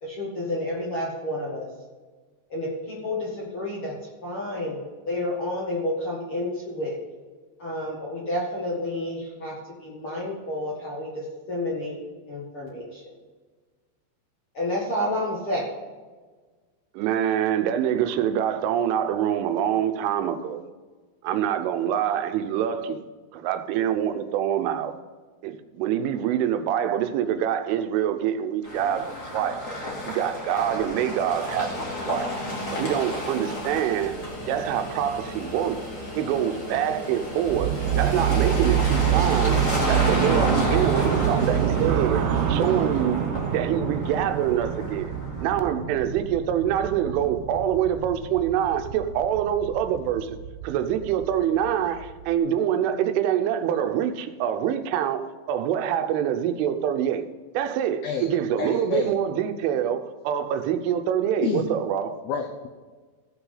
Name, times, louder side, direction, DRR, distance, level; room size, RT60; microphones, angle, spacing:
voice 1, 0.0-1.7 2.5-3.9 4.2-6.9 7.6-9.5 9.8-12.0 12.3-13.1 14.5-15.7, left 1 dB, 55° left, 1.5 m, -30 dB
voice 2, 17.0-20.6 21.2-23.0 23.3-24.9 25.4-29.6 30.1-32.3 32.7-34.2 34.5-35.8 36.2-39.6 39.9-42.2 42.5-43.2 43.5-45.1 45.4-50.4 50.6-57.3 57.5-62.2, right 9 dB, 90° right, 3.3 m, -25 dB
sound 1, 28.6-45.6, left 1 dB, 30° left, 1.6 m, -32 dB
sound 2, 37.4-52.3, right 9 dB, 70° right, 2.6 m, -27 dB
voice 3, 58.0-59.1 61.4-61.7 62.3-62.7, left 6 dB, 85° left, 2.1 m, -29 dB
16.0 x 6.0 x 5.6 m
omnidirectional pair, 5.5 m